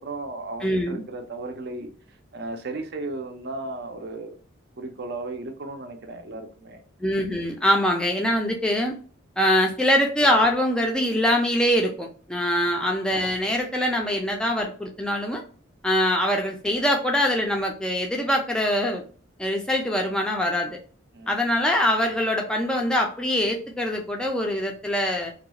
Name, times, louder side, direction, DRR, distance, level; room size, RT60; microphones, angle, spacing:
voice 1, 0.0-4.4 4.8-6.8 21.1-21.4, right 2 dB, 55° right, 5 dB, 0.5 m, -35 dB
voice 2, 0.6-1.0 7.0-9.0 9.4-15.4 15.8-19.0 19.4-20.8 21.3-25.3, equal, 5° left, 1 dB, 0.4 m, -23 dB
2.4 x 2.3 x 2.8 m, 0.42 s
head